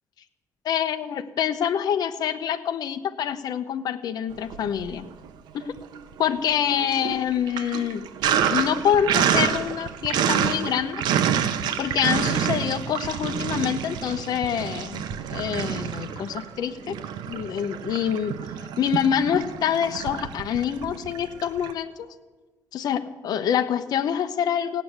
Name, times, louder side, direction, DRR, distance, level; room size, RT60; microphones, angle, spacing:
voice 1, 0.6-5.0 5.5-5.7 6.2-8.0 8.5-11.0 11.8-15.0 15.3-17.0 17.3-18.4 18.8-22.1 22.7-24.8, left 9 dB, 70° left, 8 dB, 0.9 m, -26 dB
Sink (filling or washing), 4.4-5.3 5.6-21.7, right 9 dB, 90° right, 0.9 m, -28 dB
17.0 x 9.4 x 8.0 m, 1.3 s
cardioid pair, 125°, 7 cm